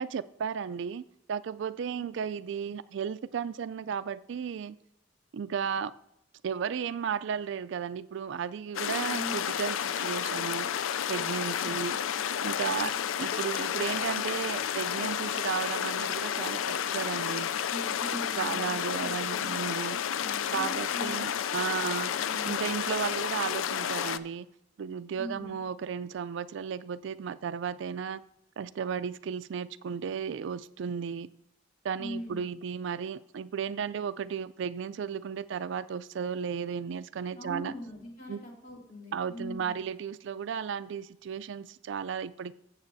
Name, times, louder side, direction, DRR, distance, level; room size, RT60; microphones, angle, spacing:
voice 1, 0.0-4.8 5.3-5.9 6.4-10.7 11.1-12.0 12.4-12.9 13.2-17.5 18.3-20.0 20.5-22.2 22.4-24.5 24.8-28.2 28.6-31.3 31.8-37.7 38.3-38.4 39.1-42.5, right 7 dB, 65° right, 16 dB, 0.3 m, -34 dB
sound 1, 8.7-24.2, left 9 dB, 90° left, 0.4 m, -31 dB
voice 2, 9.1-9.5 11.6-11.9 12.6-12.9 17.7-21.1 22.1-22.7 25.2-25.6 32.0-32.4 37.3-39.8, equal, 45° left, -2 dB, 2.5 m, -42 dB
15.0 x 7.3 x 2.7 m, 0.83 s
head